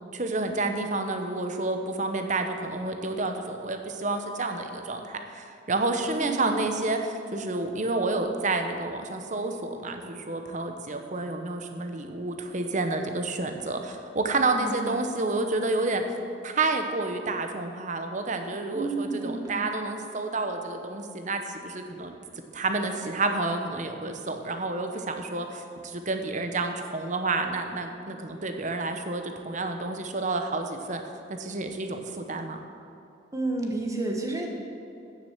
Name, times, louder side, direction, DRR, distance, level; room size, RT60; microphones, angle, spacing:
voice 1, 0.1-16.0 16.4-22.1 22.5-31.0 31.3-32.6, right 3 dB, 40° right, 5 dB, 0.9 m, -29 dB
voice 2, 6.2-6.6 14.3-15.0 18.7-19.7 33.3-34.5, right 2 dB, 20° right, 0 dB, 1.2 m, -31 dB
9.5 x 7.5 x 7.3 m, 2.6 s
head